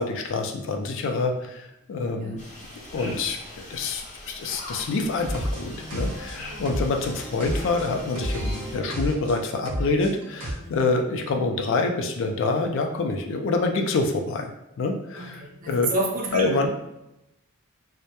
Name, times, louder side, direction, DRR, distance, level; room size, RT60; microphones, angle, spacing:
voice 1, 0.0-2.4 2.9-3.4 3.7-14.5 14.8-15.9 16.3-16.7, left 3 dB, 65° left, 4 dB, 0.3 m, -26 dB
sound 1, 2.4-8.8, left 1 dB, 35° left, 0.7 m, -42 dB
sound 2, 5.2-10.5, equal, 90° right, 0.7 m, -32 dB
voice 2, 6.3-6.6 10.6-10.7 15.2-16.7, right 2 dB, 40° right, 0 dB, 0.5 m, -30 dB
2.1 x 2.0 x 2.8 m, 0.90 s
head